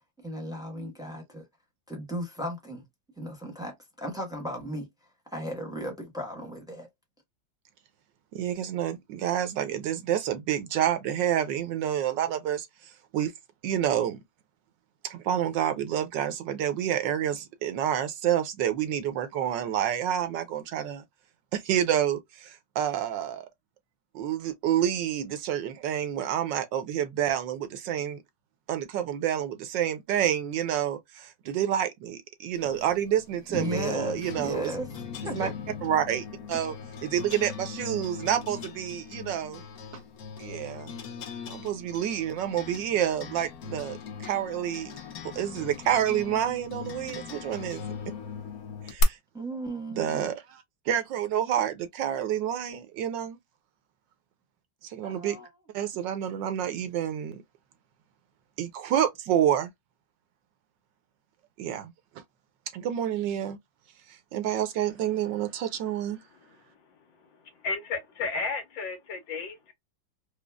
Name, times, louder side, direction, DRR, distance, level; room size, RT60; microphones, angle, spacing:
voice 1, 0.2-1.5 1.9-2.8 3.2-4.9 5.3-6.9 33.5-35.5 49.3-50.3 55.0-55.5, equal, 5° right, 0.8 m, -36 dB
voice 2, 8.3-13.3 13.6-14.2 15.0-21.0 21.5-23.5 24.1-28.2 28.7-34.7 35.3-35.5 35.8-36.7 37.0-39.6 40.4-40.9 41.5-44.9 45.3-48.1 48.9-49.2 49.9-53.4 54.8-55.4 55.7-57.4 58.6-59.7 61.6-61.9 62.7-63.6 64.1-66.2, right 10 dB, 75° right, 1.3 m, -28 dB
sound 1, 32.6-49.0, left 6 dB, 60° left, 1.0 m, -39 dB
voice 3, 67.6-69.7, left 4 dB, 75° left, 1.6 m, -33 dB
5.0 x 2.0 x 2.3 m
omnidirectional pair, 2.1 m